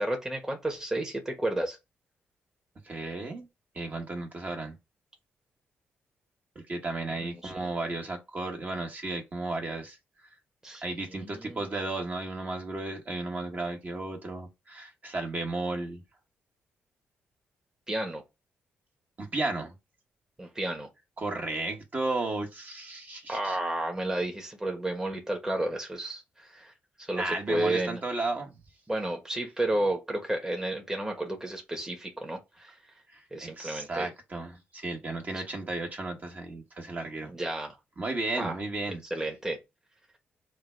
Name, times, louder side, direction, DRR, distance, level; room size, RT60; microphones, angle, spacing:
voice 1, 0.0-1.8 7.2-7.7 10.6-10.8 11.1-11.6 17.9-18.2 20.4-20.9 23.3-26.7 27.0-28.0 28.9-32.8 33.3-34.1 35.3-35.4 37.3-37.7 38.3-38.6 39.1-39.6, right 1 dB, 15° right, 1.2 m, -32 dB
voice 2, 2.8-3.5 3.7-4.8 6.5-10.0 10.8-16.0 19.2-19.7 21.2-23.6 27.2-28.5 33.1-37.3 38.0-39.0, right 2 dB, 40° right, 1.5 m, -34 dB
3.6 x 2.4 x 4.5 m
cardioid pair, 75°, 4 cm